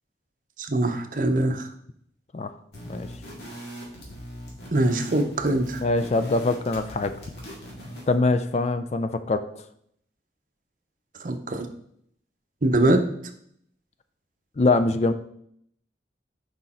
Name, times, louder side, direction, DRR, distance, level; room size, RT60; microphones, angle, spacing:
voice 1, 0.6-1.7 4.7-5.9 11.2-11.7 12.6-13.0, right 1 dB, 45° right, 7 dB, 0.7 m, -23 dB
sound 1, 2.7-8.2, equal, 65° left, 2.2 m, -40 dB
voice 2, 5.8-7.1 8.1-9.5 14.6-15.1, left 3 dB, 35° left, 9 dB, 0.4 m, -23 dB
6.3 x 5.1 x 4.2 m, 0.69 s
head